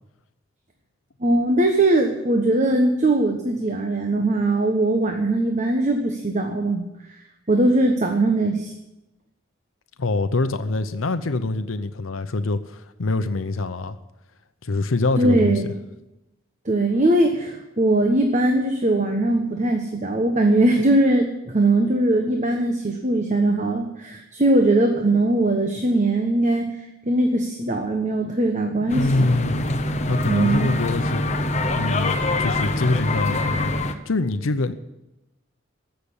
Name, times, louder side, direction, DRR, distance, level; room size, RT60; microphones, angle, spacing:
voice 1, 1.2-6.8 7.5-8.7 15.2-15.6 16.6-26.7 27.1-29.3 30.2-30.7, right 2 dB, 35° right, 3 dB, 1.2 m, -20 dB
voice 2, 10.0-14.0 14.6-15.7 28.9-29.8 30.1-31.3 31.7-32.1 32.4-34.7, left 3 dB, 85° left, 10 dB, 0.7 m, -24 dB
sound 1, 28.9-33.9, left 2 dB, 35° left, 0.9 m, -24 dB
15.5 x 6.8 x 9.8 m, 0.94 s
head